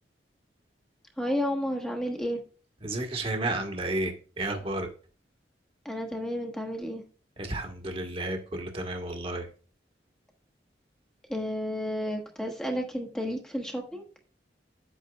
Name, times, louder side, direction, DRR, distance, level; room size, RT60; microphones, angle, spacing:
voice 1, 1.2-2.4 5.8-7.0 11.3-14.0, equal, 5° left, 1 dB, 1.2 m, -31 dB
voice 2, 2.8-4.9 7.4-9.5, right 2 dB, 35° right, 3 dB, 1.4 m, -32 dB
10.0 x 8.3 x 2.3 m, 0.38 s
head